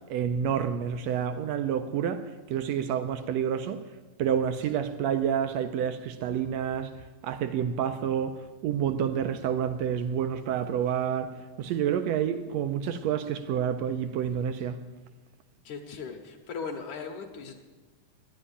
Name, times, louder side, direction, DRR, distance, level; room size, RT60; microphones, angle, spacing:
voice 1, 0.1-3.8 4.2-6.9 7.2-14.8, right 8 dB, 80° right, 1.6 m, -29 dB
voice 2, 15.6-17.5, left 5 dB, 70° left, 2.5 m, -38 dB
11.5 x 9.9 x 9.9 m
omnidirectional pair, 3.7 m